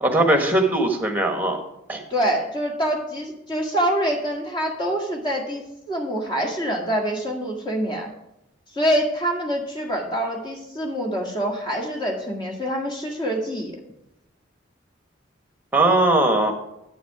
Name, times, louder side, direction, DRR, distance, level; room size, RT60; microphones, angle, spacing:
voice 1, 0.0-1.6 1.9-2.0 15.7-16.5, right 2 dB, 10° right, 3 dB, 1.4 m, -19 dB
voice 2, 2.1-5.6 5.9-8.1 8.7-13.7, equal, 25° left, 1 dB, 1.9 m, -25 dB
9.4 x 8.5 x 4.8 m, 0.87 s
head